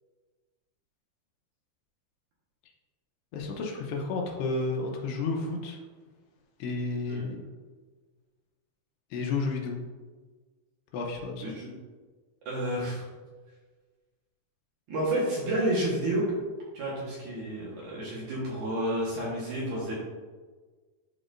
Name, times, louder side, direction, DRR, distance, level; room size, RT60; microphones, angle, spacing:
voice 1, 3.3-5.8 6.6-7.4 9.1-9.8 10.9-11.5, left 3 dB, 90° left, 1 dB, 3.1 m, -31 dB
voice 2, 12.5-13.0 14.9-16.2 16.7-20.0, right 1 dB, 60° right, -6 dB, 2.4 m, -30 dB
12.0 x 4.0 x 2.6 m, 1.4 s
omnidirectional pair, 4.7 m